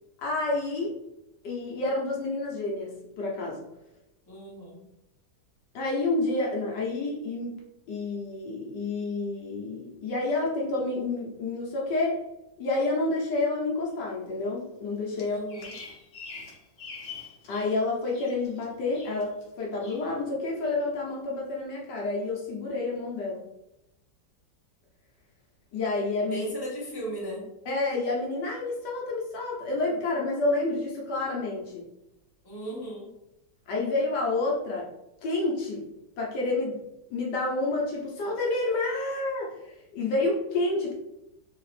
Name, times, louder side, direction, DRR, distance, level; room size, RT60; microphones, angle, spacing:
voice 1, 0.2-1.0 1.4-3.6 5.7-7.6 7.9-12.2 12.6-15.4 17.5-23.4 25.7-26.5 27.7-31.8 33.7-34.9 35.2-35.8 36.2-36.8 37.1-40.9, left 2 dB, 70° left, -2 dB, 1.4 m, -29 dB
voice 2, 4.3-4.8 15.2-15.7 26.2-27.4 32.4-33.1, right 1 dB, 15° left, -6 dB, 1.1 m, -36 dB
Bird vocalization bird call bird song, 15.2-17.7 18.0-18.6 18.9-19.5 19.8-20.1, left 5 dB, 50° left, 0.8 m, -44 dB
4.0 x 2.8 x 3.1 m, 0.88 s
omnidirectional pair, 2.0 m